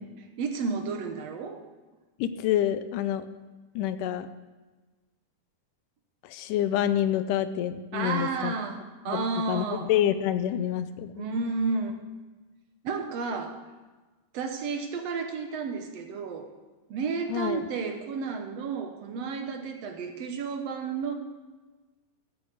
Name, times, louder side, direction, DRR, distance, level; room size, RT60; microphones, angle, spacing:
voice 1, 0.4-1.6 7.9-9.9 11.1-12.0 12.8-13.6 14.3-16.5 16.9-21.1, right 4 dB, 65° right, 5 dB, 1.8 m, -32 dB
voice 2, 2.2-3.3 3.8-4.3 6.2-8.5 9.1-11.3 17.3-17.7, left 11 dB, 80° left, 12 dB, 2.1 m, -27 dB
14.5 x 8.4 x 6.5 m, 1.3 s
omnidirectional pair, 4.0 m